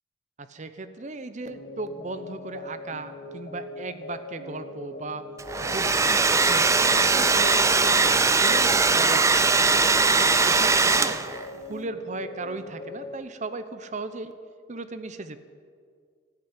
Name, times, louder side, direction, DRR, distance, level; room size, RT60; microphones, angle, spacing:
voice 1, 0.4-5.2 5.6-9.5 10.1-11.2 11.5-14.3 14.7-15.4, right 3 dB, 40° right, 11 dB, 0.7 m, -37 dB
sound 1, 1.5-13.2, left 2 dB, 55° left, 1.3 m, -41 dB
Domestic sounds home sounds, 5.4-11.5, right 4 dB, 15° right, 0.4 m, -20 dB
14.0 x 8.3 x 9.8 m, 2.1 s
head